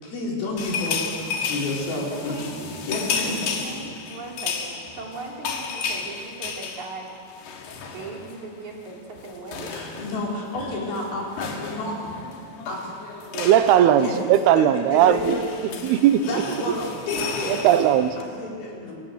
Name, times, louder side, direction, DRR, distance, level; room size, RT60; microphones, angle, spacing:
voice 1, 0.0-2.4 2.8-3.5 9.6-12.0 12.7-12.8 13.8-14.2 14.6-15.4 15.7-15.8 16.2-17.7 18.2-19.0, left 2 dB, 65° left, -3 dB, 6.5 m, -30 dB
sound 1, 0.6-8.5 8.7-8.9 9.2-18.2, left 5 dB, 80° left, 4.1 m, -33 dB
voice 2, 1.9-2.7 3.2-7.4 7.9-9.7 15.8-15.9, right 3 dB, 50° right, -1 dB, 4.2 m, -38 dB
voice 3, 13.3-15.4 15.8-16.3 17.5-18.2, right 11 dB, 85° right, 11 dB, 2.8 m, -18 dB
25.0 x 18.5 x 8.0 m, 2.3 s
omnidirectional pair, 4.6 m